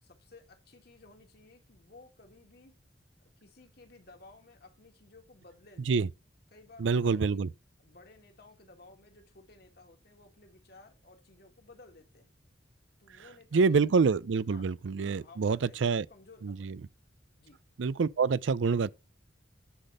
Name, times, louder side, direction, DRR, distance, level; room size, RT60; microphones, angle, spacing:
voice 1, 0.0-2.7 3.4-6.0 6.5-7.4 7.8-12.4 13.0-13.9 14.5-14.7 15.0-16.8 17.4-17.6, left 3 dB, 60° left, 2.4 m, -56 dB
voice 2, 6.8-7.5 13.5-16.0 16.4-16.8 17.8-18.9, right 5 dB, 80° right, 0.4 m, -26 dB
10.0 x 4.1 x 6.5 m
head